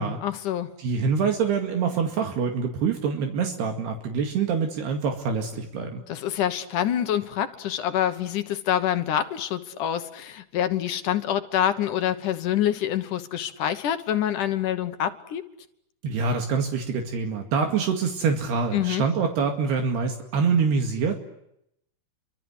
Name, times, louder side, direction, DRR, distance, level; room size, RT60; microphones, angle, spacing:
voice 1, 0.2-0.7 6.1-15.4 18.7-19.0, left 10 dB, 65° left, 9 dB, 2.2 m, -26 dB
voice 2, 0.8-6.0 16.0-21.2, right 5 dB, 70° right, 4 dB, 4.1 m, -25 dB
29.5 x 25.0 x 8.1 m, 0.78 s
omnidirectional pair, 4.9 m